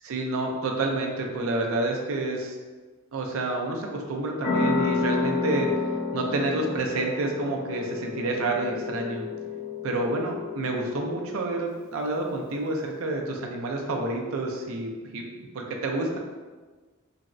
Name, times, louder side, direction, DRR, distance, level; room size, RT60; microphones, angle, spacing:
voice 1, 0.0-2.6 3.1-5.7 6.1-9.3 9.8-15.2 15.5-16.2, right 2 dB, 75° right, 1 dB, 0.4 m, -29 dB
sound 1, 4.4-11.6, left 4 dB, 75° left, 0.6 m, -30 dB
3.3 x 2.0 x 2.5 m, 1.3 s
head